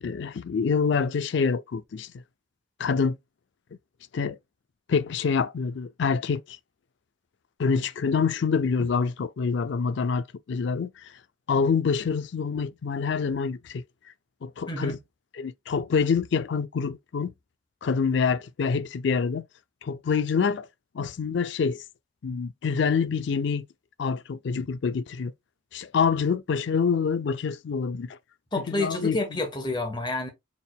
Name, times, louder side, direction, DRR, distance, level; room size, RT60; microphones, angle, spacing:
voice 1, 0.0-2.1 2.8-3.2 4.1-4.4 4.9-6.6 7.6-11.1 11.5-13.8 14.4-15.0 15.3-17.3 17.8-19.4 19.8-20.7 20.9-21.8 22.2-23.7 24.0-25.3 25.7-28.2 28.7-29.2, left 5 dB, 65° left, 0.4 m, -26 dB
voice 2, 14.7-15.0 28.5-30.3, left 2 dB, 20° left, 1.1 m, -29 dB
4.2 x 3.6 x 2.2 m
head